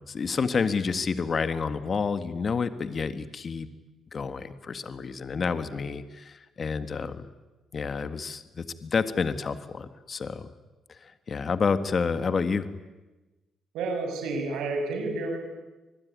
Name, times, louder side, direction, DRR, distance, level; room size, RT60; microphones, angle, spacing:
voice 1, 0.0-3.7 4.1-7.3 7.7-10.5 10.9-12.7, left 5 dB, 45° left, 11 dB, 1.7 m, -29 dB
voice 2, 13.7-15.4, right 3 dB, 90° right, 4 dB, 6.9 m, -30 dB
26.5 x 21.0 x 9.6 m, 1.1 s
cardioid pair, 90°, 0 cm